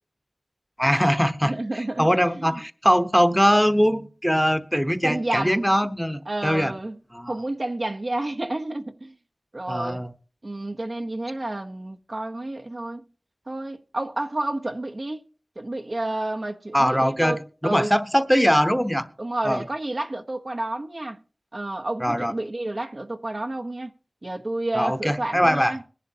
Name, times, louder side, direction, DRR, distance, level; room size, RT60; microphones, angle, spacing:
voice 1, 0.8-6.7 7.1-7.3 9.7-10.1 16.7-19.1 19.4-19.6 22.0-22.3 24.7-25.7, equal, ahead, 1.0 m, -22 dB
voice 2, 1.4-2.6 5.0-5.7 6.3-7.0 7.3-9.1 9.5-10.0 10.4-13.0 13.5-15.3 15.6-17.9 19.2-21.2 21.5-23.9 24.2-25.8, right 2 dB, 55° right, 1.0 m, -30 dB
21.0 x 11.0 x 2.8 m
wide cardioid pair, 40°, 0 cm